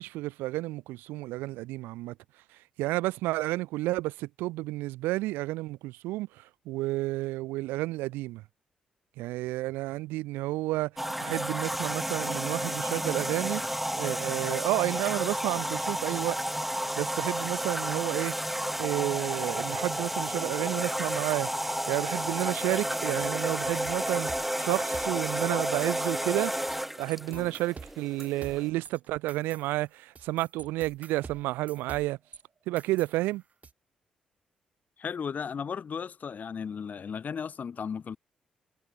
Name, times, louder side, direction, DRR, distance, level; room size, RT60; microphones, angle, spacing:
voice 1, 0.0-2.2 2.8-8.4 9.2-13.6 14.0-16.4 17.0-18.3 18.8-21.5 21.9-26.5 27.0-32.2 32.7-33.4, right 18 dB, 85° right, 0.6 m, -31 dB
sound 1, 11.0-28.7, equal, 5° right, 0.4 m, -32 dB
sound 2, 23.4-25.4 25.8-26.8 27.1-32.4 32.8-33.7, right 5 dB, 45° right, 2.4 m, -48 dB
voice 2, 35.0-38.2, left 6 dB, 55° left, 3.6 m, -35 dB
hypercardioid pair, 45°, 3 cm